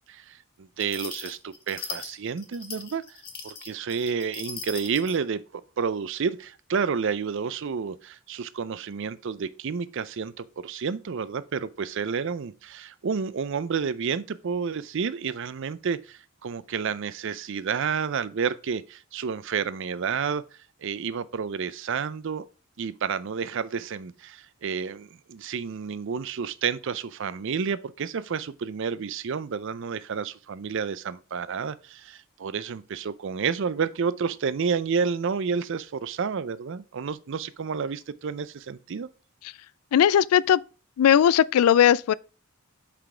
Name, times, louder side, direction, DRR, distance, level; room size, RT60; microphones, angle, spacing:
voice 1, 0.1-3.0 3.4-20.4 20.8-22.4 22.8-39.1, right 6 dB, 60° right, 0.4 m, -30 dB
sound 1, 0.8-5.2, left 5 dB, 45° left, 1.1 m, -39 dB
voice 2, 39.9-40.6 41.0-42.1, left 9 dB, 90° left, 0.3 m, -18 dB
5.9 x 5.0 x 4.9 m
head